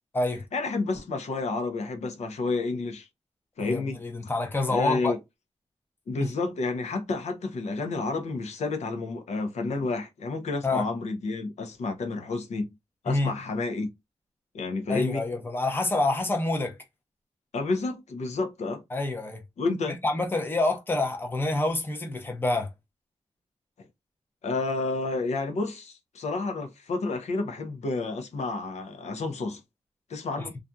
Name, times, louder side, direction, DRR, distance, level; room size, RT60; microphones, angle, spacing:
voice 1, 0.5-3.1 3.6-4.0 4.7-5.2 6.1-12.7 13.0-13.9 14.5-15.2 17.5-18.8 19.6-20.0 24.4-29.6 30.1-30.5, left 3 dB, 85° left, 0.7 m, -30 dB
voice 2, 3.6-5.1 6.2-6.3 10.6-10.8 13.1-13.3 14.9-16.8 18.9-19.4 20.0-22.7, left 2 dB, 20° left, 0.6 m, -27 dB
2.7 x 2.4 x 2.2 m
wide cardioid pair, 145°, 11 cm